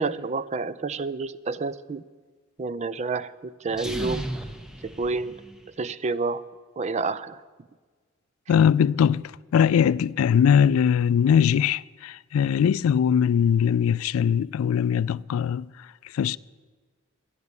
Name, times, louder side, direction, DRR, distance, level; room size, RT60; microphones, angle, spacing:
voice 1, 0.0-2.0 2.6-4.3 4.8-5.4 5.8-6.4 6.8-7.4, right 4 dB, 35° right, 0.4 m, -29 dB
sound 1, 3.7-5.8, right 1 dB, 5° right, 0.7 m, -35 dB
voice 2, 8.5-15.9 16.1-16.4, left 8 dB, 85° left, 0.3 m, -21 dB
12.0 x 9.6 x 8.2 m
head